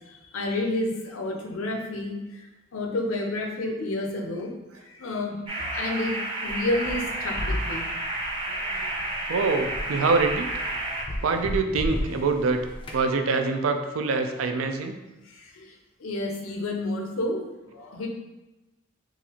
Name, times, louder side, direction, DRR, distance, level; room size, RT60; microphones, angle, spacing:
voice 1, 0.3-2.2 2.7-4.5 5.0-5.4 5.7-7.9 15.4-15.7 16.0-17.5 17.7-18.1, left 2 dB, 90° left, 2 dB, 0.6 m, -29 dB
sound 1, 5.5-11.0, right 1 dB, 25° right, 0.6 m, -31 dB
sound 2, 6.5-13.1, left 1 dB, 25° left, 0.4 m, -35 dB
voice 2, 8.5-9.0 9.3-10.6 11.2-12.7 12.9-15.0, right 4 dB, 85° right, 7 dB, 0.4 m, -25 dB
3.9 x 2.4 x 2.9 m, 1.0 s
head